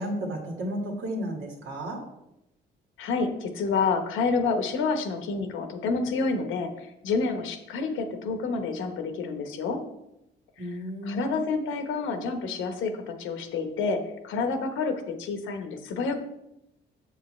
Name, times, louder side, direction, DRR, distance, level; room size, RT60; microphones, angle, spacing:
voice 1, 0.0-2.0 10.6-11.4, equal, 85° right, 0 dB, 1.8 m, -33 dB
voice 2, 3.0-9.8 11.0-16.2, left 4 dB, 85° left, 6 dB, 1.1 m, -28 dB
6.9 x 6.7 x 3.2 m, 0.85 s
cardioid pair, 90°, 20 cm